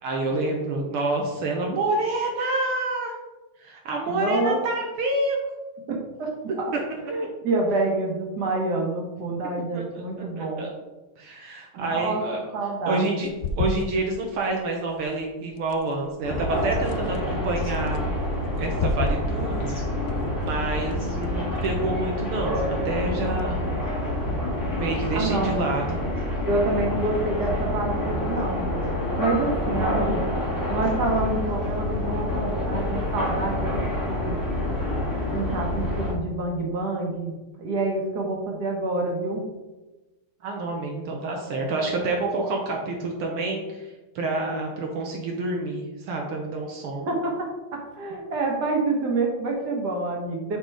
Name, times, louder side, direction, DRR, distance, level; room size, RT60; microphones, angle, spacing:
voice 1, 0.0-3.1 3.6-5.4 9.7-10.0 10.4-10.7 11.2-12.4 12.9-13.3 13.5-18.2 18.6-19.7 20.4-23.6 24.7-26.0 40.4-43.9 44.1-47.1, right 2 dB, 75° right, 0 dB, 1.8 m, -28 dB
voice 2, 4.1-4.6 6.2-6.3 6.6-6.7 7.1-10.7 11.8-12.2 12.5-13.1 25.1-25.6 26.4-28.7 29.2-30.3 30.7-33.7 34.1-34.4 35.3-37.3 37.6-39.4 47.1-50.6, right 2 dB, 50° right, 0 dB, 1.8 m, -27 dB
sound 1, 13.2-23.5, left 3 dB, 85° left, 0.9 m, -36 dB
sound 2, 16.2-36.1, left 1 dB, 10° left, 1.7 m, -27 dB
6.5 x 4.2 x 4.9 m, 1.1 s
omnidirectional pair, 2.4 m